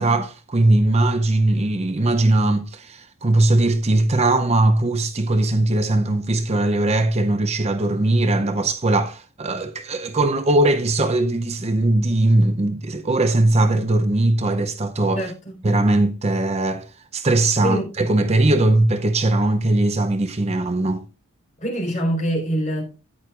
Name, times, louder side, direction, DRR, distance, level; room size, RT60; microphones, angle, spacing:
voice 1, 0.0-15.3 15.6-16.9 17.1-21.0, right 2 dB, 30° right, 0.6 m, -20 dB
voice 2, 15.2-15.5 17.6-17.9 21.6-23.0, equal, 35° left, 4.2 m, -24 dB
13.5 x 9.7 x 2.4 m
head